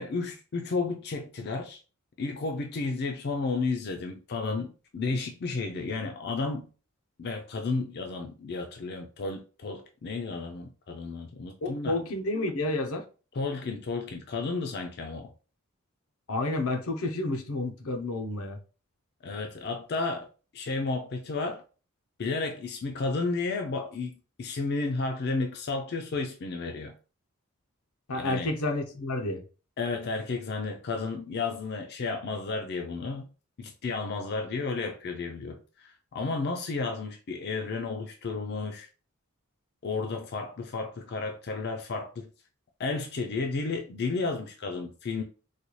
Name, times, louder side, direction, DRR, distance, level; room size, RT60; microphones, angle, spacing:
voice 1, 0.0-1.8 2.2-6.7 7.2-12.0 13.3-15.3 19.2-20.3 20.5-21.6 22.2-26.9 28.1-28.5 29.8-33.3 33.6-38.9 39.8-42.3 42.8-45.2, left 3 dB, 50° left, 0.4 m, -32 dB
voice 2, 11.6-13.0 16.3-18.6 28.1-29.4, left 2 dB, 85° left, 0.7 m, -30 dB
4.0 x 2.3 x 3.1 m
head